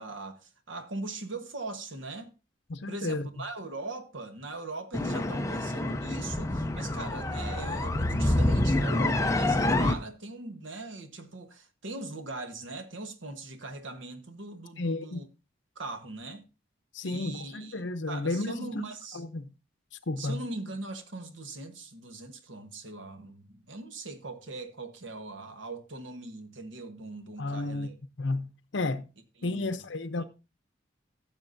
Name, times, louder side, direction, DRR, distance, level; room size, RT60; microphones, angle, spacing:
voice 1, 0.0-2.3 2.9-15.3 15.8-16.4 17.0-19.2 20.2-28.0 29.4-29.8, right 2 dB, 80° right, 1.2 m, -40 dB
voice 2, 2.7-3.2 14.8-15.2 16.9-18.7 19.1-19.5 20.1-20.4 27.4-27.9 28.2-29.0 29.4-30.2, left 2 dB, 70° left, 0.8 m, -32 dB
sound 1, 4.9-9.9, left 1 dB, 15° left, 0.5 m, -27 dB
14.5 x 7.2 x 2.6 m
head